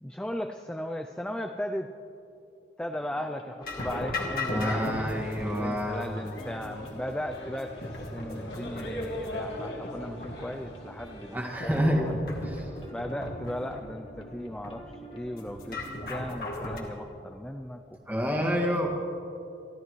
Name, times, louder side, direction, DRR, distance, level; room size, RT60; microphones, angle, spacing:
voice 1, 0.0-1.9 2.8-12.1 12.9-15.8 16.1-18.6, equal, 5° left, 5 dB, 0.4 m, -37 dB
sound 1, 2.9-16.0, equal, 30° left, 1.4 m, -48 dB
sound 2, 3.6-16.8, left 2 dB, 55° left, 2.1 m, -38 dB
voice 2, 4.2-6.1 11.3-12.7 18.1-18.9, equal, 10° right, 0 dB, 1.8 m, -28 dB
sound 3, 4.8-11.5, left 1 dB, 85° left, 2.8 m, -41 dB
28.0 x 12.5 x 3.2 m, 2.7 s
head